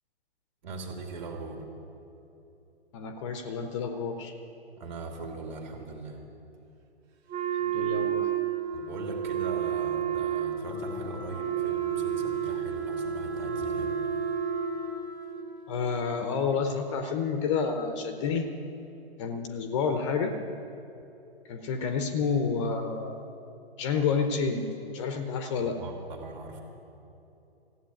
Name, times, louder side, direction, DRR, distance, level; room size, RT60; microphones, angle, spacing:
voice 1, 0.6-1.6 4.8-6.2 8.7-14.0 25.6-26.6, right 3 dB, 45° right, 2 dB, 2.4 m, -40 dB
voice 2, 2.9-4.3 7.6-8.3 15.7-18.5 19.2-20.4 21.5-23.2 23.8-24.7 24.9-25.8, left 5 dB, 30° left, 7 dB, 0.8 m, -29 dB
Wind instrument woodwind instrument, 7.3-15.2, right 10 dB, 25° right, 1.2 m, -31 dB
Wind instrument woodwind instrument 2, 8.1-16.9, left 3 dB, 90° right, 1.5 m, -41 dB
15.0 x 8.2 x 9.1 m, 2.9 s
figure-of-eight pair, 125°, 32 cm